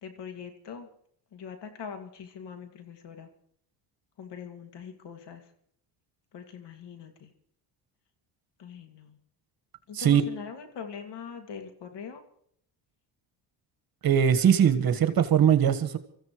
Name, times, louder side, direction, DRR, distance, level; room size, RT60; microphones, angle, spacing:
voice 1, 0.0-0.9 1.3-3.3 4.2-5.5 6.3-7.3 8.6-9.2 9.9-12.2, left 6 dB, 60° left, 6 dB, 2.5 m, -42 dB
voice 2, 14.0-16.0, right 8 dB, 50° right, 9 dB, 1.6 m, -21 dB
25.0 x 14.5 x 3.2 m, 0.66 s
supercardioid pair, 75°, 46 cm